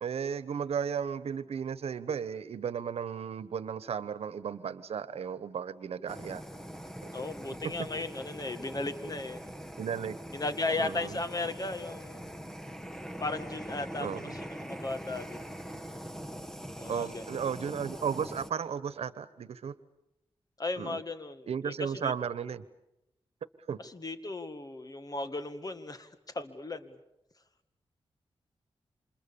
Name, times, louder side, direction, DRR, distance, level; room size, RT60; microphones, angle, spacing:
voice 1, 0.0-6.4 9.8-10.2 10.8-11.2 14.0-14.3 16.9-19.7 20.8-21.0 21.5-22.6 23.7-23.8, right 7 dB, 90° right, 16 dB, 1.1 m, -34 dB
Fire, 6.1-18.5, equal, 5° left, 1.6 m, -43 dB
voice 2, 7.1-9.4 10.3-12.3 13.2-15.4 16.8-17.4 20.6-22.1 23.8-26.1 26.3-27.0, left 2 dB, 40° left, 10 dB, 2.0 m, -36 dB
28.5 x 27.0 x 7.1 m, 0.87 s
wide cardioid pair, 85°, 10 cm